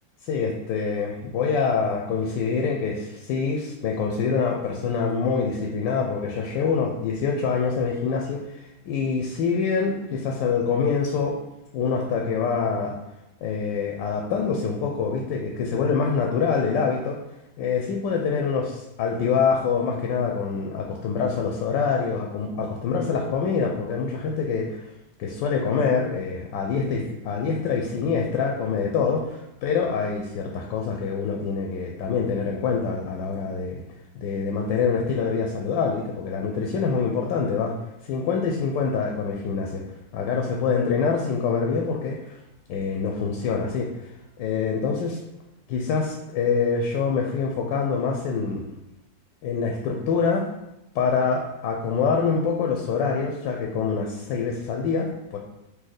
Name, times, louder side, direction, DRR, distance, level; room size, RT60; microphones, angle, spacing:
voice 1, 0.2-11.4 11.7-13.0 13.4-17.2 17.6-18.7 19.0-24.8 25.2-33.8 34.1-37.7 38.0-39.8 40.1-42.4 42.7-43.9 44.4-45.2 45.7-48.6 49.4-50.4 50.9-55.4, left 5 dB, 80° left, 1 dB, 1.2 m, -25 dB
4.3 x 2.8 x 3.8 m, 0.92 s
omnidirectional pair, 2.1 m